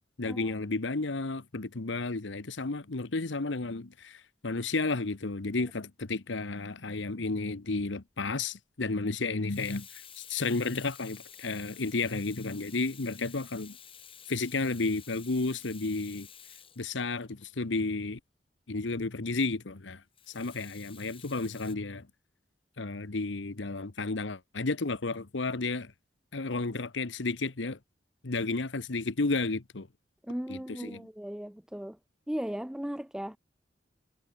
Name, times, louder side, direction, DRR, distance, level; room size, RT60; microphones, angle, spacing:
voice 1, 0.0-9.9 10.2-13.8 14.3-16.3 16.8-18.2 18.7-20.0 20.3-22.1 22.8-25.9 26.3-27.8 28.2-29.9 30.5-31.0, left 3 dB, 75° left, 1.1 m, -32 dB
Water tap faucet / Sink (filling or washing), 7.8-8.0 9.3-17.5 20.2-21.7, left 8 dB, 30° left, 4.2 m, -51 dB
voice 2, 30.2-32.0 32.3-33.4, equal, 5° right, 0.4 m, -36 dB
head